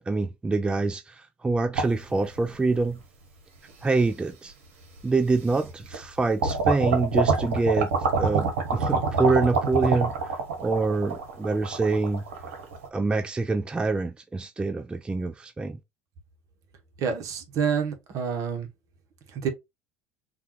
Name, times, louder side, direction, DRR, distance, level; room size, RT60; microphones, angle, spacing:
voice 1, 0.0-3.0 3.8-4.5 5.0-7.9 8.2-10.1 10.6-12.2 12.9-15.8, right 3 dB, 15° right, 0.3 m, -25 dB
sound 1, 1.7-2.9 3.7-3.8 5.0-5.1 5.5-6.1 6.4-12.9, right 4 dB, 80° right, 0.9 m, -26 dB
voice 2, 17.0-18.7 19.3-19.5, right 6 dB, 55° right, 0.9 m, -28 dB
3.5 x 2.3 x 2.9 m
hypercardioid pair, 70°, 7 cm